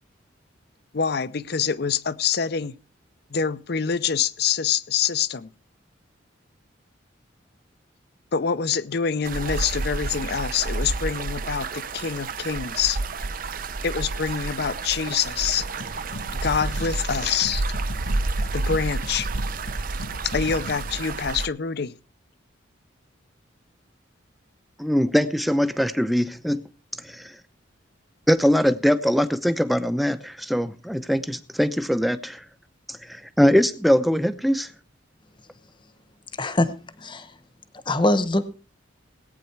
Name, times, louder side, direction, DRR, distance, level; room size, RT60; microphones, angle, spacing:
voice 1, 0.9-2.7 3.3-5.5 8.3-13.0 13.8-15.6 16.3-17.6 18.5-19.3 20.2-21.9, left 7 dB, 55° left, 0.6 m, -26 dB
sound 1, 9.2-21.5, right 3 dB, 45° right, 0.6 m, -30 dB
sound 2, 15.8-20.9, left 1 dB, 75° left, 1.9 m, -39 dB
voice 2, 24.8-26.6 27.0-27.3 28.3-32.4 32.9-34.7, equal, ahead, 0.6 m, -22 dB
voice 3, 36.4-36.7 37.0-37.4 37.9-38.4, left 1 dB, 25° left, 1.0 m, -22 dB
18.0 x 9.0 x 4.6 m
head